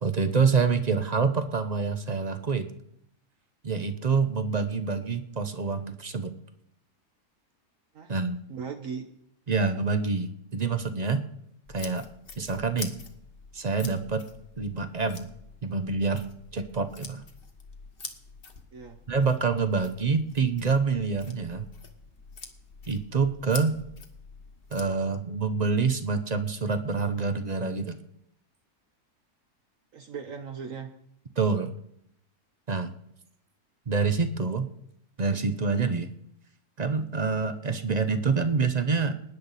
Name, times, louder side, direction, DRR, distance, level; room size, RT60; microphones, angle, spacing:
voice 1, 0.0-2.7 3.6-6.3 8.1-8.4 9.5-11.2 11.7-12.1 12.4-12.9 13.5-14.2 14.6-15.3 15.6-16.2 16.5-17.2 19.1-21.7 22.9-23.8 24.7-28.0 31.4-31.7 32.7-32.9 33.9-34.7 35.2-36.1 36.8-39.1, right 4 dB, 40° right, 9 dB, 0.6 m, -26 dB
voice 2, 8.5-9.1 18.7-19.0 29.9-30.9, right 6 dB, 60° right, 5 dB, 1.2 m, -38 dB
sound 1, 11.6-24.9, left 4 dB, 40° left, 1.4 m, -46 dB
20.0 x 9.8 x 4.1 m, 0.74 s
omnidirectional pair, 1.6 m